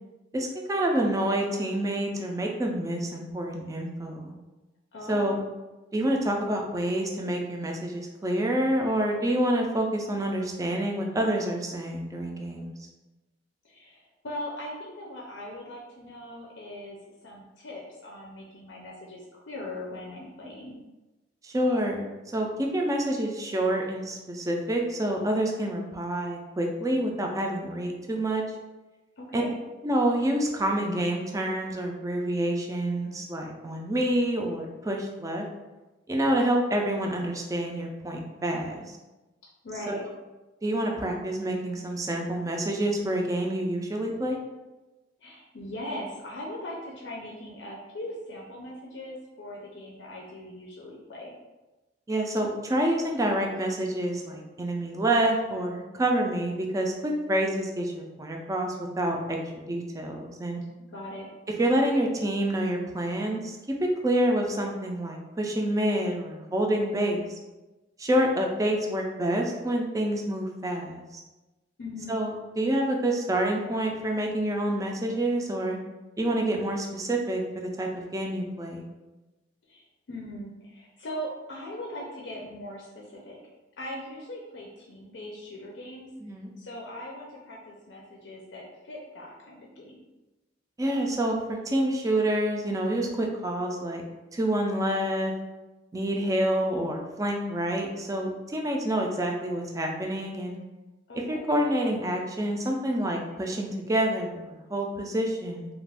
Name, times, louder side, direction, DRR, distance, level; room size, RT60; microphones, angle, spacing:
voice 1, 0.3-4.3 5.1-5.4 5.9-12.9 21.4-22.0 22.3-28.4 29.3-29.4 29.8-35.5 36.1-39.0 39.9-40.0 40.6-44.4 52.1-57.9 58.2-59.4 59.7-60.6 61.6-63.6 64.0-67.4 68.0-71.2 72.1-75.8 76.2-78.8 86.2-86.5 90.8-94.0 94.3-95.3 95.9-100.6 101.3-105.7, right 1 dB, 20° right, 1 dB, 0.4 m, -27 dB
voice 2, 4.9-5.3 13.6-17.0 17.2-20.8 29.2-29.5 39.6-40.0 45.2-51.3 60.9-61.3 71.8-72.2 79.7-79.8 80.1-83.4 83.8-86.1 86.6-90.0 101.1-101.4, left 1 dB, 75° left, -3 dB, 0.5 m, -40 dB
2.4 x 2.3 x 3.4 m, 1.1 s
head